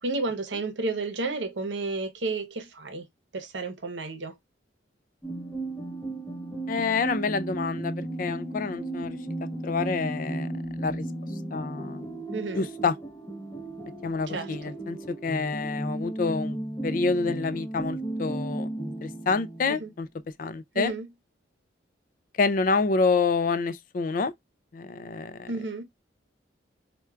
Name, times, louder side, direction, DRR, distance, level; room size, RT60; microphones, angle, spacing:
voice 1, 0.0-3.0 3.3-4.3 12.3-12.7 14.3-14.5 19.7-19.9 20.7-21.1 25.5-25.8, right 3 dB, 75° right, 0.8 m, -31 dB
sound 1, 5.2-19.9, right 2 dB, 10° left, 0.7 m, -35 dB
voice 2, 6.7-9.2 9.6-10.5 10.8-11.0 11.5-12.0 12.5-12.9 14.0-16.6 16.8-18.7 19.0-20.1 20.4-20.9 22.4-24.3 24.7-25.5, left 4 dB, 45° left, 0.3 m, -27 dB
4.4 x 2.2 x 2.3 m
head